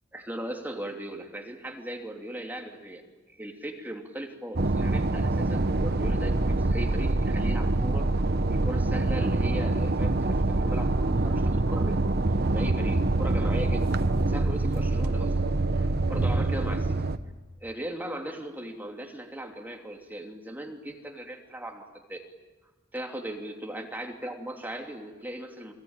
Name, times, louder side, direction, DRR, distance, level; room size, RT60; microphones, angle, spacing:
voice 1, 0.1-3.0 3.3-8.1 8.5-12.0 12.5-15.3 15.7-17.0 17.6-22.2 22.9-25.7, right 1 dB, 10° right, 2 dB, 2.9 m, -38 dB
sound 1, 4.6-17.2, right 2 dB, 55° right, 1.0 m, -25 dB
30.0 x 22.0 x 9.0 m, 1.2 s
head